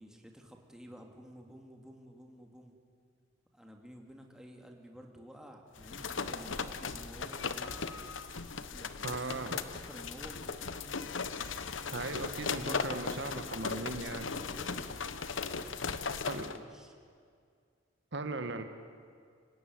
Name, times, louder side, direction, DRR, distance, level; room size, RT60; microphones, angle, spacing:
voice 1, 0.0-2.8 3.5-7.9 8.7-9.4 9.7-11.2 12.4-14.9 16.0-17.0, equal, 5° right, 2 dB, 2.5 m, -52 dB
sound 1, 5.8-16.6, left 5 dB, 85° left, 1.1 m, -38 dB
voice 2, 9.0-9.6 11.9-14.2 16.3-16.5 18.1-18.6, right 3 dB, 65° right, 8 dB, 1.5 m, -38 dB
26.0 x 16.5 x 9.6 m, 2.2 s
head